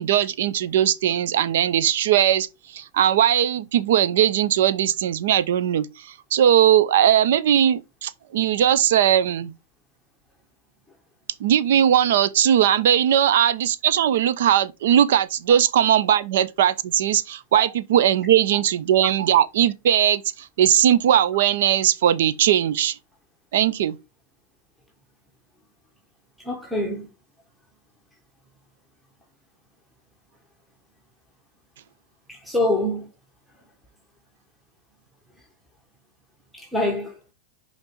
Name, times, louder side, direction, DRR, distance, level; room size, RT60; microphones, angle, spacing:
voice 1, 0.0-2.5 2.7-9.5 11.4-23.0 23.5-23.9, right 10 dB, 70° right, 0.6 m, -19 dB
voice 2, 26.4-27.1 32.3-33.1 36.5-37.1, left 1 dB, ahead, 1.2 m, -25 dB
5.4 x 3.9 x 4.5 m
hypercardioid pair, 130°, 0 cm